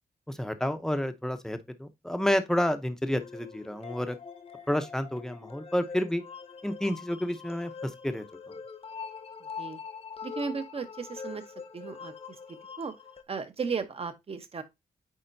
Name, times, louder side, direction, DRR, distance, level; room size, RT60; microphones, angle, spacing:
voice 1, 0.3-4.2 4.7-6.2 6.6-8.6, left 1 dB, 5° left, 0.7 m, -30 dB
sound 1, 3.2-13.2, left 6 dB, 40° left, 0.9 m, -43 dB
voice 2, 10.2-12.1 12.8-12.9 13.3-14.6, right 5 dB, 40° right, 0.9 m, -35 dB
8.7 x 4.3 x 2.6 m
wide cardioid pair, 140°, 16 cm